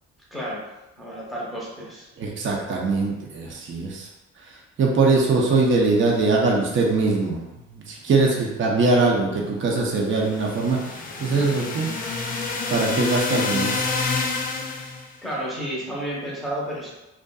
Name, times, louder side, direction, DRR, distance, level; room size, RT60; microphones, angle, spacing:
voice 1, 0.3-0.7 1.0-2.1 8.1-8.4 15.2-16.9, right 1 dB, ahead, -6 dB, 0.9 m, -31 dB
voice 2, 2.2-4.1 4.8-7.5 7.7-10.8 11.2-11.9 12.7-13.9, right 3 dB, 40° right, -2 dB, 0.6 m, -21 dB
sound 1, 10.1-15.1, left 3 dB, 30° left, 0.4 m, -28 dB
2.5 x 2.5 x 2.3 m, 1.0 s
cardioid pair, 90°, 30 cm